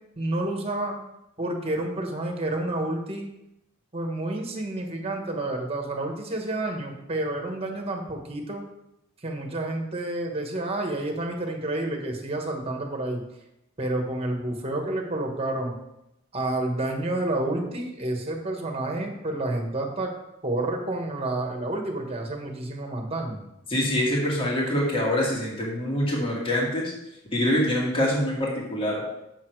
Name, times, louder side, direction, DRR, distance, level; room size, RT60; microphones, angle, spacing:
voice 1, 0.2-1.0 1.4-3.3 3.9-8.6 9.2-13.2 13.8-15.7 16.3-20.1 20.4-23.4, right 2 dB, 30° right, 3 dB, 1.5 m, -29 dB
voice 2, 23.7-26.9 27.3-29.0, left 1 dB, 25° left, -3 dB, 2.2 m, -25 dB
8.6 x 6.9 x 4.7 m, 0.87 s
head